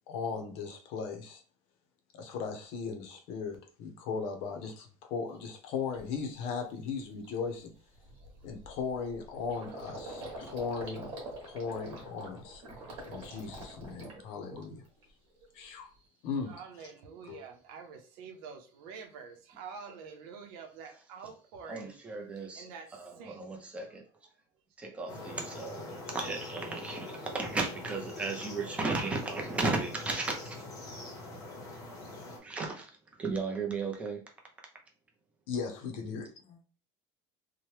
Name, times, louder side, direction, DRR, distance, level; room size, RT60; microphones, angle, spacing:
voice 1, 0.1-1.4 2.1-7.7 8.4-11.1 11.4-12.6 13.0-14.8 15.5-15.9 16.2-16.6 17.3-17.4 35.5-36.6, left 5 dB, 60° left, 0.6 m, -37 dB
Gurgling, 5.3-5.4 5.9-6.2 6.6-6.7 7.0-15.0 15.4-16.0, right 1 dB, 45° right, 1.1 m, -46 dB
voice 2, 16.5-22.0 22.4-23.4, right 5 dB, 80° right, 0.7 m, -47 dB
voice 3, 21.7-24.0 24.8-32.9 33.2-34.2, right 3 dB, 10° right, 0.5 m, -36 dB
sound 1, 25.1-32.4, left 2 dB, 25° left, 0.8 m, -43 dB
2.9 x 2.1 x 3.1 m
cardioid pair, 175°, 12 cm